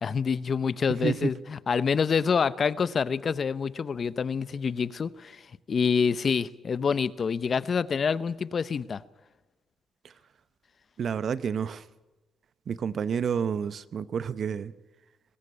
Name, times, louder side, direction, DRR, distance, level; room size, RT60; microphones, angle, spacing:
voice 1, 0.0-9.0, left 6 dB, 45° left, 0.7 m, -27 dB
voice 2, 1.0-1.3 10.0-10.1 11.0-11.9 12.7-14.7, right 7 dB, 55° right, 0.9 m, -30 dB
21.0 x 16.5 x 9.7 m
cardioid pair, 90°, 0 cm